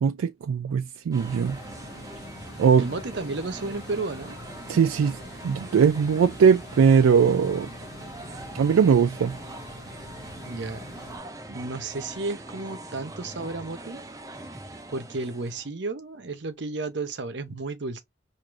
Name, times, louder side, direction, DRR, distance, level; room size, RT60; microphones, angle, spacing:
voice 1, 0.0-1.6 2.6-2.9 4.7-5.2 5.4-7.7 8.5-9.4, right 6 dB, 85° right, 0.3 m, -20 dB
Sketchy Neighborhood Traffic Day, 1.1-11.2, left 1 dB, 55° left, 1.0 m, -44 dB
sound 1, 1.1-15.7, right 2 dB, 15° right, 0.5 m, -42 dB
voice 2, 2.8-4.4 10.4-11.0 11.5-14.0 14.9-18.0, right 3 dB, 55° right, 0.7 m, -33 dB
4.6 x 2.6 x 2.4 m
head